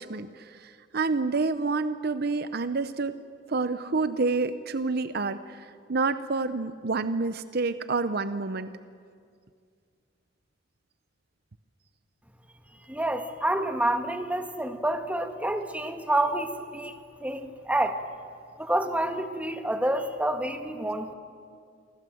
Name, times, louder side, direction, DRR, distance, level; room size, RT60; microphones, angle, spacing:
voice 1, 0.0-3.2 3.5-8.7, right 3 dB, 60° right, 12 dB, 0.8 m, -28 dB
voice 2, 12.9-18.0 18.6-21.1, right 1 dB, 10° right, 6 dB, 1.6 m, -28 dB
28.0 x 23.5 x 7.9 m, 2.2 s
head